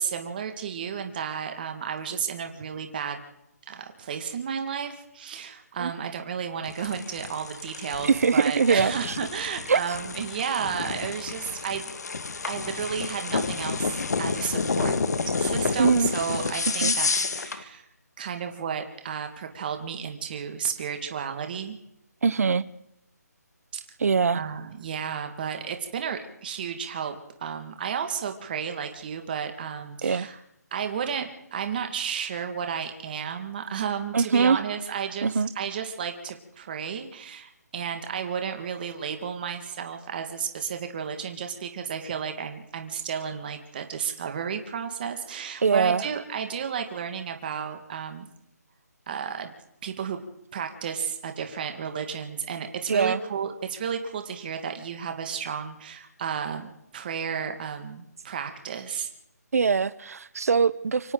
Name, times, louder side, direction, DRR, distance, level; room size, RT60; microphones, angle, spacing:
voice 1, 0.0-3.2 3.7-11.9 12.5-15.0 15.3-17.1 17.3-17.9 18.2-21.8 23.7-23.8 24.3-30.4 30.7-48.3 49.1-49.5 49.8-50.2 50.5-59.1, right 7 dB, 30° right, 1.8 m, -32 dB
sound 1, 6.6-17.6, left 4 dB, 65° left, 1.8 m, -30 dB
voice 2, 8.0-9.2 9.7-9.8 15.8-16.1 16.8-16.9 22.2-22.6 24.0-24.4 30.0-30.3 34.1-34.6 35.2-35.5 45.6-46.0 52.9-53.2 59.5-61.1, right 5 dB, 60° right, 0.9 m, -22 dB
27.5 x 24.5 x 3.9 m
hypercardioid pair, 165°, 9 cm